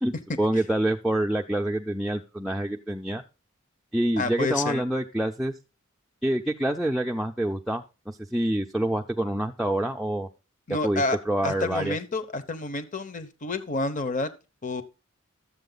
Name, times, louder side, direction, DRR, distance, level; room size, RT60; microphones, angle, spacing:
voice 1, 0.0-3.2 3.9-5.5 6.2-10.3 10.8-12.0, right 1 dB, ahead, 0 dB, 0.5 m, -27 dB
voice 2, 4.2-4.8 10.7-11.2 11.4-14.3 14.6-14.8, left 3 dB, 40° left, 11 dB, 1.0 m, -29 dB
12.5 x 7.6 x 3.9 m, 0.31 s
head